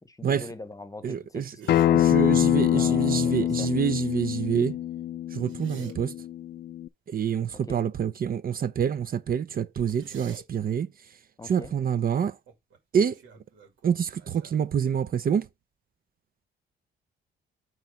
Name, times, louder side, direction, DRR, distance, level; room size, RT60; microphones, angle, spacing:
voice 1, 0.0-3.7 7.5-7.9 11.4-11.7, left 2 dB, 15° left, 1.0 m, -42 dB
voice 2, 1.0-1.5 1.9-4.8 5.3-6.1 7.1-10.9 11.5-12.3 12.9-13.2 13.8-15.5, right 8 dB, 45° right, 0.6 m, -27 dB
sound 1, 1.6-1.9 5.3-5.9 9.9-10.4 12.5-12.8 13.1-15.2, right 4 dB, 75° right, 2.2 m, -48 dB
Acoustic guitar, 1.7-6.9, left 12 dB, 55° left, 0.4 m, -25 dB
9.1 x 3.1 x 5.0 m
cardioid pair, 90°, 20 cm